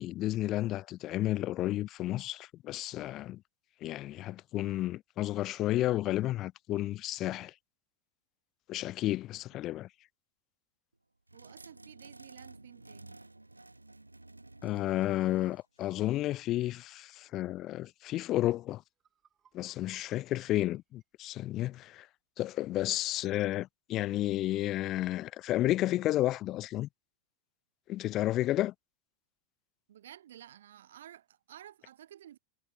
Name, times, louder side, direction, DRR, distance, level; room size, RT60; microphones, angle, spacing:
voice 1, 0.0-3.4 3.8-7.5 8.7-9.9 14.6-18.8 19.5-22.1 22.4-26.9 27.9-28.7, left 15 dB, 35° left, 0.3 m, -32 dB
voice 2, 11.3-13.2 29.9-32.4, right 11 dB, 60° right, 1.0 m, -53 dB
sound 1, 11.3-16.3, right 2 dB, 85° right, 2.8 m, -53 dB
sound 2, 18.9-22.0, right 8 dB, 25° right, 4.5 m, -71 dB
figure-of-eight pair, 90°, 0 cm